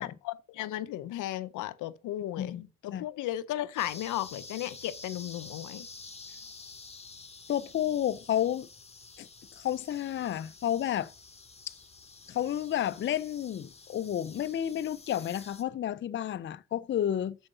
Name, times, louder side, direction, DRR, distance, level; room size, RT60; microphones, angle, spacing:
voice 1, 0.3-5.9, left 13 dB, 80° left, 0.6 m, -35 dB
voice 2, 2.4-3.0 7.5-8.7 9.2-9.3 9.5-11.1 11.7-11.8 12.3-17.4, left 10 dB, 40° left, 0.5 m, -31 dB
sound 1, 3.8-15.6, left 3 dB, 20° left, 1.1 m, -49 dB
7.0 x 5.3 x 5.3 m
cardioid pair, 90°, 30 cm